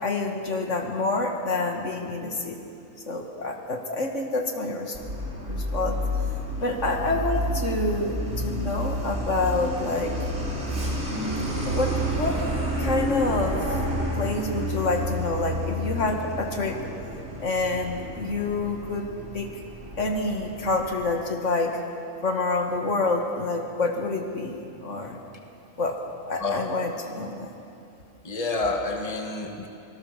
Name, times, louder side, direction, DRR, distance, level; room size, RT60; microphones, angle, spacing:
voice 1, 0.0-2.6 3.1-5.0 5.4-6.0 6.6-10.2 11.1-12.4 12.8-13.6 14.2-16.8 17.4-19.1 19.3-19.5 20.0-21.8 22.2-25.2 25.8-26.0 26.3-27.5, left 2 dB, 65° left, 2 dB, 2.1 m, -27 dB
Truck, 4.9-21.2, equal, 55° right, 5.1 m, -30 dB
voice 2, 28.2-29.7, left 3 dB, 25° left, 3 dB, 1.7 m, -28 dB
26.0 x 19.0 x 6.7 m, 2.7 s
omnidirectional pair, 1.4 m